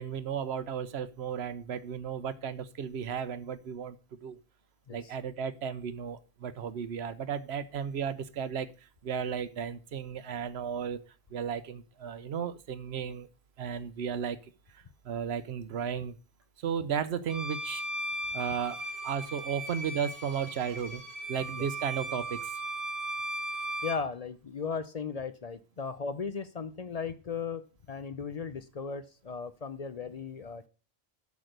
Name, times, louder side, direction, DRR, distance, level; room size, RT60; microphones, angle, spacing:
voice 1, 0.0-4.0 4.2-4.4 4.9-8.7 9.0-11.0 11.3-13.3 13.6-14.4 15.0-16.1 16.6-17.8 18.3-21.0 21.3-22.5, right 7 dB, 85° right, 14 dB, 1.0 m, -34 dB
Bowed string instrument, 17.3-24.1, right 1 dB, 60° right, 1.8 m, -37 dB
voice 2, 23.8-30.7, left 5 dB, 45° left, 12 dB, 0.6 m, -37 dB
8.3 x 6.2 x 6.5 m, 0.35 s
omnidirectional pair, 1.1 m